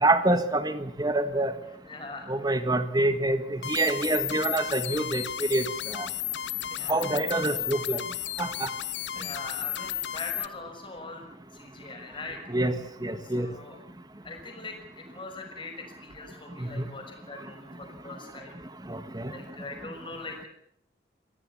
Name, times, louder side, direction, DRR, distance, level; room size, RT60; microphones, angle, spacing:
voice 1, 0.0-1.5 2.3-6.1 6.9-8.0 8.4-8.7 12.5-12.7 13.0-13.5 16.6-16.8 18.9-19.3, right 2 dB, 20° right, 10 dB, 1.5 m, -26 dB
voice 2, 1.8-2.3 6.5-7.1 9.1-11.2 11.5-12.5 13.2-13.8 14.2-18.6 19.3-20.5, left 3 dB, 25° left, 2 dB, 6.0 m, -42 dB
sound 1, 3.6-10.5, left 11 dB, 75° left, 0.9 m, -33 dB
25.0 x 17.0 x 7.1 m, 0.75 s
head